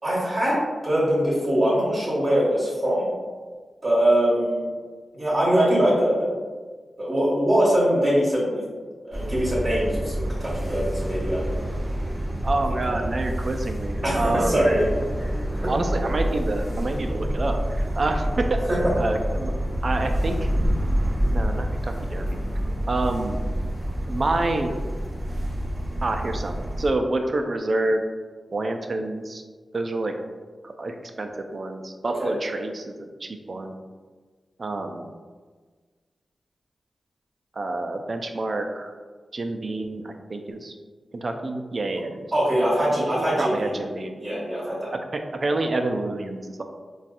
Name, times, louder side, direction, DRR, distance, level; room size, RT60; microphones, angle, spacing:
voice 1, 0.0-3.1 3.8-4.7 5.1-6.3 7.0-8.6 9.0-11.6 12.9-13.0 14.0-14.8 15.2-15.7 18.7-18.8 32.2-32.3 42.3-43.7 44.2-44.9, equal, 35° right, -8 dB, 1.2 m, -22 dB
sound 1, 9.1-26.9, equal, 15° right, 0.9 m, -27 dB
voice 2, 12.4-14.9 15.7-18.6 19.0-19.5 19.8-20.5 21.3-22.4 22.9-23.4 24.1-24.8 26.0-28.0 28.5-29.4 29.7-30.1 30.6-33.7 34.6-35.1 37.5-38.9 39.3-40.7 41.1-42.3 42.7-44.2 45.1-46.6, right 2 dB, 55° right, 5 dB, 0.3 m, -28 dB
4.0 x 2.3 x 2.5 m, 1.5 s
cardioid pair, 50°, 0 cm